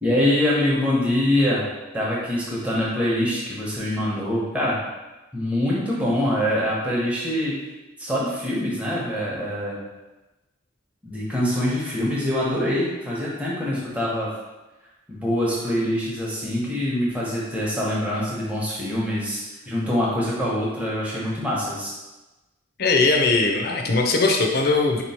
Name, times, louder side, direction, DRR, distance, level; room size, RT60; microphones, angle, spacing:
voice 1, 0.0-1.7 1.9-4.8 5.3-7.6 8.0-9.8 11.0-14.3 15.1-21.9, left 1 dB, 5° right, -7 dB, 0.9 m, -24 dB
voice 2, 22.8-25.0, left 3 dB, 50° left, 2 dB, 0.6 m, -20 dB
4.1 x 3.0 x 4.2 m, 1.1 s
head